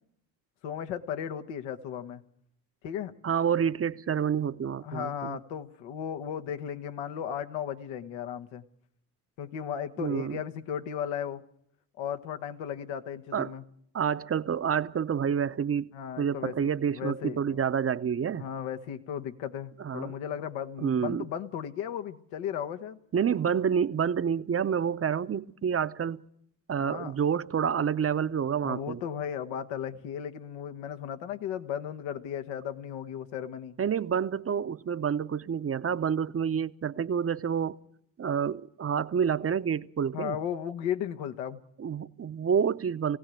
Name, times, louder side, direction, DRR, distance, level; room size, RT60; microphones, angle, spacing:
voice 1, 0.6-2.2 2.8-3.1 4.8-8.6 9.4-11.4 12.0-13.6 15.9-17.6 18.3-23.0 26.8-27.1 28.6-33.7 40.1-41.6, left 9 dB, 80° left, 1.4 m, -35 dB
voice 2, 3.2-5.4 10.0-10.4 13.3-13.5 13.9-15.9 16.2-18.5 19.8-20.1 20.8-21.2 23.1-26.2 26.7-29.0 33.8-37.8 38.2-40.4 41.8-43.2, right 7 dB, 30° right, 0.8 m, -28 dB
20.5 x 16.5 x 9.1 m
supercardioid pair, 65°, 47 cm